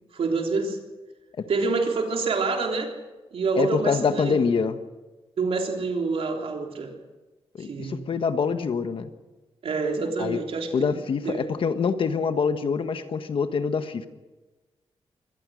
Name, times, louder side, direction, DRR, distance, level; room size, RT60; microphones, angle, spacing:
voice 1, 0.1-0.8 1.5-2.9 3.3-4.4 5.4-6.9 7.6-8.0 9.6-11.0 11.3-11.4, right 4 dB, 70° right, 2 dB, 3.4 m, -27 dB
voice 2, 3.6-4.8 7.5-9.1 10.2-10.4 10.7-14.1, left 5 dB, 60° left, 9 dB, 1.4 m, -25 dB
24.0 x 18.0 x 6.4 m, 1.2 s
wide cardioid pair, 125°, 10 cm